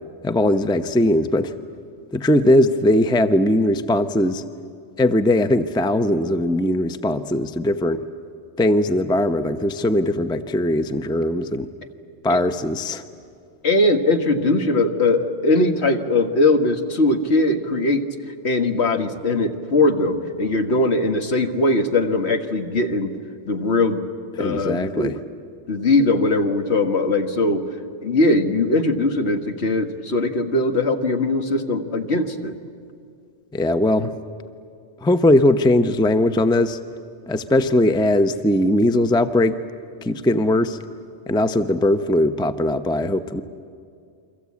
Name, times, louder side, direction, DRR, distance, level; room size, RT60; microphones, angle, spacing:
voice 1, 0.2-1.5 2.1-4.4 5.0-8.0 8.6-11.7 12.2-13.0 24.4-25.2 33.5-34.1 35.0-36.8 37.3-39.6 40.0-40.8 41.3-43.4, left 1 dB, 5° left, 9 dB, 0.6 m, -19 dB
voice 2, 13.6-18.0 18.4-23.1 23.5-24.0 24.4-25.1 25.7-27.6 28.0-32.5, left 2 dB, 60° left, 6 dB, 1.7 m, -20 dB
29.0 x 23.5 x 8.5 m, 2.3 s
omnidirectional pair, 1.2 m